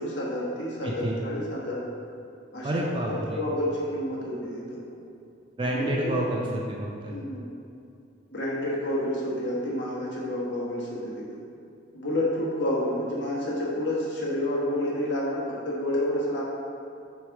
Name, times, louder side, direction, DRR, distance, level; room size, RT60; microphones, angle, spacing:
voice 1, 0.0-1.8 2.5-2.8 3.1-4.8 5.6-6.2 7.1-7.4 8.3-11.4 11.9-16.4, left 1 dB, 65° left, -6 dB, 1.3 m, -29 dB
voice 2, 0.8-1.2 2.6-3.4 5.6-7.1, right 1 dB, 25° right, -3 dB, 0.5 m, -29 dB
6.3 x 3.3 x 4.7 m, 2.6 s
head